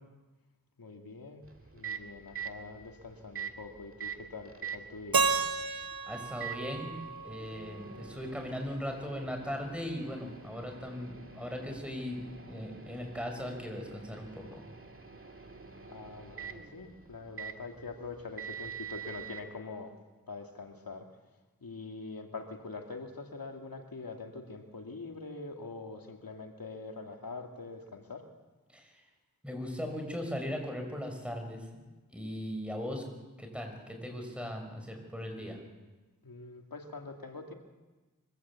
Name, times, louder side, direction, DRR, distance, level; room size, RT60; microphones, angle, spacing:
voice 1, 0.8-1.4 1.7-5.3 15.9-19.9 20.3-21.1 21.6-28.3 36.2-37.5, left 3 dB, 90° left, 3 dB, 2.4 m, -44 dB
Microwave oven, 1.4-19.4, right 7 dB, 40° right, 1.9 m, -46 dB
Keyboard (musical), 5.1-8.1, right 4 dB, 85° right, 1.0 m, -32 dB
voice 2, 6.1-6.9 7.2-14.6 28.7-29.0 29.4-31.7 32.1-33.0 33.4-35.6, equal, 5° right, 3 dB, 5.9 m, -38 dB
24.0 x 15.0 x 8.3 m, 1.2 s
wide cardioid pair, 45°, 34 cm